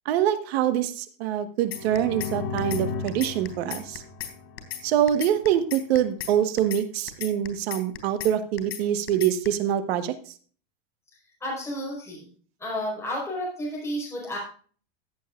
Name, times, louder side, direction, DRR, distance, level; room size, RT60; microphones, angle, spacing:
voice 1, 0.0-4.0 4.8-10.1, right 10 dB, 75° right, 10 dB, 1.5 m, -25 dB
sound 1, 1.7-2.3 2.6-2.8 3.1-4.3 4.6-4.8 5.1-6.3 6.6-6.8 7.1-8.3 8.6-8.8 9.1-9.5, left 11 dB, 80° left, 3.5 m, -35 dB
sound 2, 1.7-5.4, left 5 dB, 45° left, 1.8 m, -35 dB
voice 2, 11.4-12.3 12.6-14.4, equal, 10° left, -4 dB, 4.8 m, -31 dB
15.0 x 8.3 x 2.5 m, 0.43 s
supercardioid pair, 145°, 32 cm